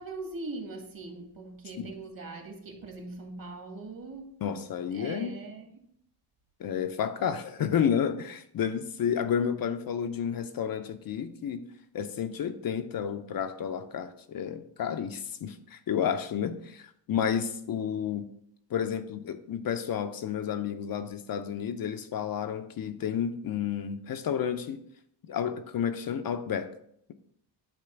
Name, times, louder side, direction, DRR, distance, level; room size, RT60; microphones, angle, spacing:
voice 1, 0.0-4.3 4.9-5.9, right 3 dB, 50° right, 2 dB, 2.0 m, -41 dB
voice 2, 4.4-5.3 6.6-11.6 11.9-18.2 18.7-24.8 25.3-26.7, left 8 dB, 50° left, 8 dB, 0.6 m, -31 dB
8.5 x 3.0 x 5.8 m, 0.69 s
cardioid pair, 95°, 45 cm